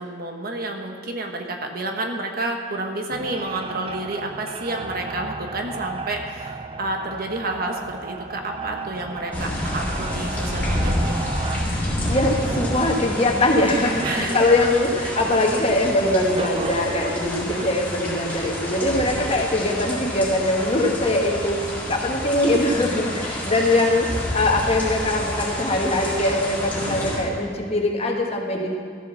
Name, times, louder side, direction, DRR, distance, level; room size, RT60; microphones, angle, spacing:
voice 1, 0.0-11.3 14.0-14.5 15.0-15.3, right 2 dB, 50° right, 3 dB, 1.2 m, -30 dB
sound 1, 3.1-15.9 16.4-17.7, right 4 dB, 30° right, 0.5 m, -35 dB
sound 2, 9.3-27.2, left 1 dB, 10° left, 2.9 m, -29 dB
voice 2, 12.1-24.1 24.3-28.8, left 1 dB, 30° left, 1 dB, 1.5 m, -22 dB
14.0 x 7.5 x 6.8 m, 2.1 s
head